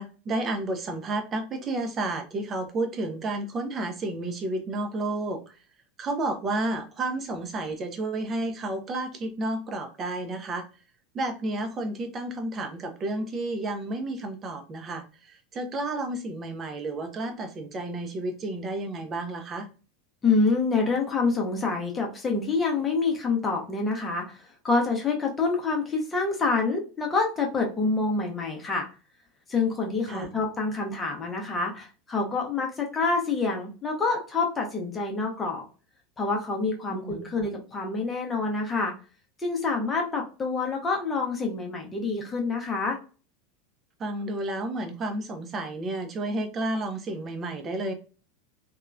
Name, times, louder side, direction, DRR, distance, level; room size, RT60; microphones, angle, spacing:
voice 1, 0.0-5.4 6.0-10.6 11.1-19.7 30.1-30.3 36.9-37.3 44.0-47.9, right 2 dB, 30° right, 6 dB, 0.6 m, -31 dB
voice 2, 20.2-28.9 29.5-35.6 36.2-38.9 39.4-43.0, left 4 dB, 20° left, 1 dB, 0.8 m, -27 dB
2.9 x 2.3 x 2.4 m, 0.35 s
figure-of-eight pair, 80°, 0 cm